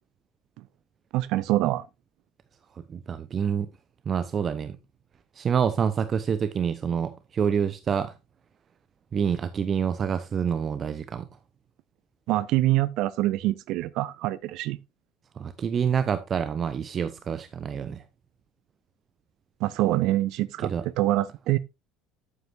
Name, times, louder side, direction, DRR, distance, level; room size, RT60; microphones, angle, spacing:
voice 1, 1.1-1.9 12.3-14.8 19.6-20.7 21.0-21.6, right 16 dB, 55° right, 0.4 m, -25 dB
voice 2, 2.9-3.7 4.1-4.8 5.3-8.1 9.1-11.3 15.4-18.0 20.6-20.8, right 7 dB, 35° right, 0.8 m, -27 dB
12.0 x 8.1 x 2.5 m
figure-of-eight pair, 65°, 0 cm